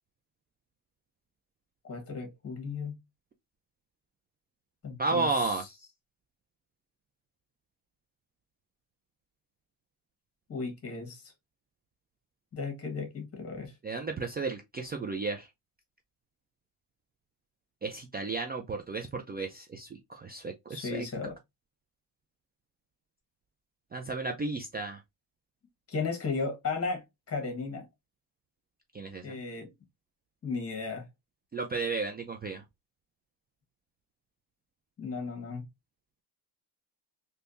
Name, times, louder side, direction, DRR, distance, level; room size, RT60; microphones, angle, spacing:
voice 1, 1.8-3.0 4.8-5.6 10.5-11.3 12.5-13.7 20.7-21.4 25.9-27.9 29.2-29.7 30.4-31.1 35.0-35.6, left 4 dB, 35° left, 1.4 m, -35 dB
voice 2, 5.0-5.9 13.8-15.5 17.8-21.1 23.9-25.0 28.9-29.4 31.5-32.6, right 3 dB, 25° right, 0.4 m, -33 dB
3.3 x 2.8 x 2.6 m
cardioid pair, 120°, 44 cm